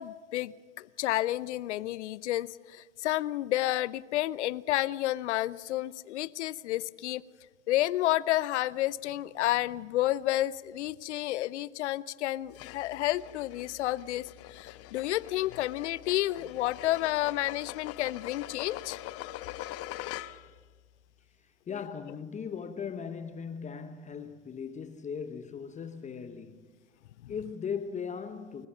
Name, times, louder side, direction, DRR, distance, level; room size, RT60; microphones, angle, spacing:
voice 1, 0.0-7.2 7.7-19.0 27.2-27.3, left 15 dB, 60° left, 0.8 m, -30 dB
sound 1, 12.5-20.6, left 15 dB, 40° left, 1.1 m, -43 dB
voice 2, 21.4-26.7 27.3-28.7, left 6 dB, 20° left, 1.1 m, -38 dB
29.5 x 14.5 x 7.3 m
hypercardioid pair, 95°, 38 cm